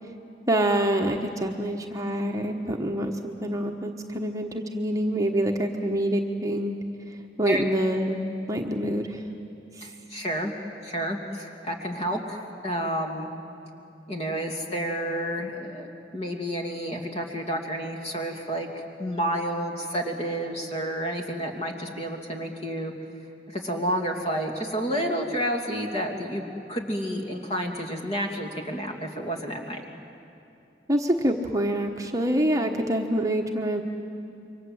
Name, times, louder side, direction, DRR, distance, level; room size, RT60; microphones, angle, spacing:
voice 1, 0.5-6.8 7.4-9.2 9.8-9.9 30.9-33.8, right 1 dB, 20° right, 2 dB, 1.1 m, -26 dB
voice 2, 9.8-10.5 10.8-13.3 14.1-22.9 23.5-29.8, equal, 35° left, 2 dB, 2.7 m, -30 dB
27.5 x 24.0 x 7.9 m, 2.7 s
head